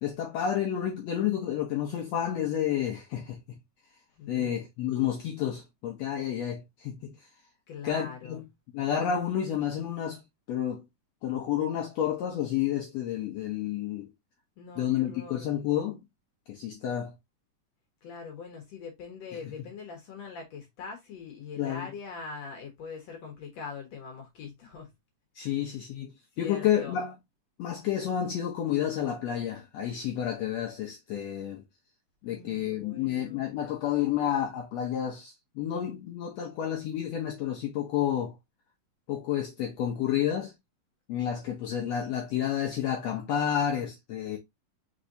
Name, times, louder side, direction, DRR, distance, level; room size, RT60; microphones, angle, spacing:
voice 1, 0.0-3.4 4.3-7.1 7.8-8.4 8.7-10.2 10.5-10.8 11.2-14.1 14.8-16.0 16.5-17.1 21.6-21.9 25.3-26.1 26.4-27.1 27.6-31.6 32.2-38.4 39.1-40.5 41.1-44.4, left 10 dB, 90° left, 1.4 m, -30 dB
voice 2, 4.2-4.6 7.7-8.4 14.6-15.5 18.0-24.9 25.5-25.7 26.3-27.0 32.2-33.5 41.6-41.9, left 5 dB, 65° left, 1.8 m, -42 dB
4.6 x 4.1 x 2.5 m
omnidirectional pair, 3.9 m